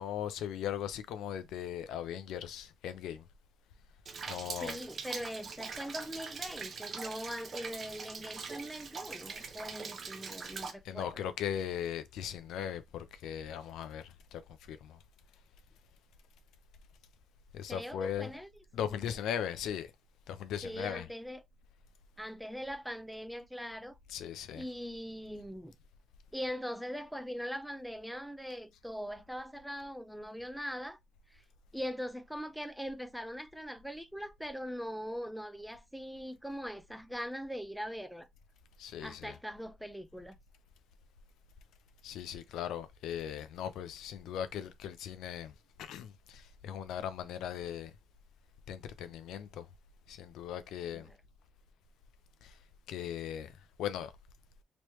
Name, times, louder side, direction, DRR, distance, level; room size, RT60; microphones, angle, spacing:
voice 1, 0.0-3.2 4.3-4.8 10.8-14.4 14.7-15.0 17.5-18.3 18.7-19.9 20.3-21.1 24.1-24.7 38.8-39.4 42.0-45.5 45.8-47.9 48.7-49.7 50.1-51.1 52.4-52.5 52.9-53.5 53.8-54.1, left 9 dB, 85° left, 0.5 m, -38 dB
Rain, 4.1-10.7, right 5 dB, 45° right, 0.7 m, -42 dB
voice 2, 4.6-11.3 17.7-18.5 18.8-19.2 20.6-21.4 22.2-24.0 24.5-25.7 26.3-31.0 31.3-31.4 31.7-38.3 39.0-40.4 50.9-51.2, equal, ahead, 0.5 m, -41 dB
3.1 x 3.1 x 3.0 m
cardioid pair, 90°, 0 cm